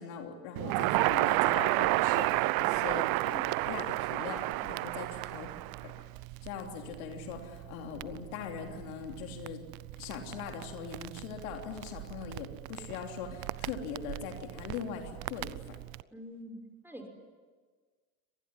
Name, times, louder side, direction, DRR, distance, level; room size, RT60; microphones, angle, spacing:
voice 1, 0.0-5.5 5.8-6.1 6.4-9.6 10.0-15.8, left 7 dB, 75° left, 3 dB, 3.3 m, -41 dB
Crackle, 0.6-16.0, right 22 dB, 55° right, 0.7 m, -33 dB
voice 2, 5.1-5.9 16.1-16.6 16.8-17.1, equal, 5° right, 4 dB, 5.8 m, -47 dB
25.0 x 19.5 x 9.8 m, 1.5 s
hypercardioid pair, 75°, 42 cm